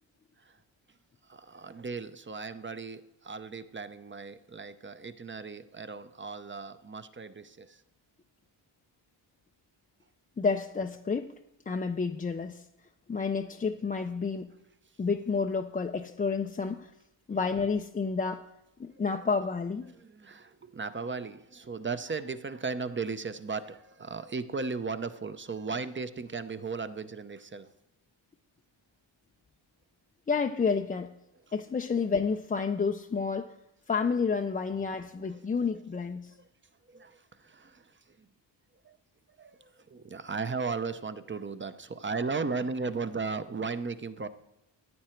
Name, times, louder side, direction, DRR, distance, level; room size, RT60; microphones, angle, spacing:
voice 1, 1.3-7.8 20.0-27.7 35.3-35.4 36.9-37.8 38.8-39.0 39.4-44.3, right 4 dB, 25° right, 0.6 m, -36 dB
voice 2, 10.4-11.3 11.7-12.6 13.1-14.5 15.0-16.9 17.3-18.5 18.8-19.9 30.3-31.1 31.5-33.5 33.9-36.3, left 5 dB, 20° left, 0.4 m, -30 dB
14.0 x 9.6 x 4.4 m
cardioid pair, 95°, 47 cm